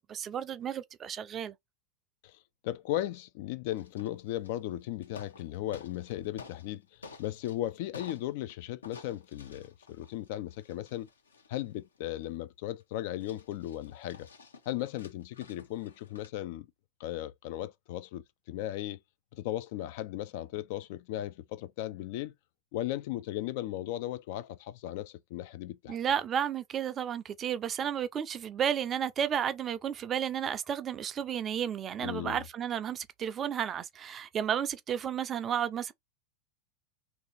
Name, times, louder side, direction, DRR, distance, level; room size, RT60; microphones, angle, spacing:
voice 1, 0.1-1.5 25.9-35.9, right 8 dB, 25° right, 0.4 m, -32 dB
voice 2, 2.2-11.1 11.5-14.3 14.7-16.7 17.0-19.0 19.3-22.3 22.7-26.0 32.0-32.4, left 14 dB, 50° left, 0.4 m, -36 dB
sound 1, 3.8-4.7 5.0-6.7 7.0-8.5 8.8-12.4 12.8-12.9 13.2-16.3, left 4 dB, 70° left, 0.9 m, -52 dB
3.0 x 2.7 x 4.0 m
figure-of-eight pair, 90°, 0 cm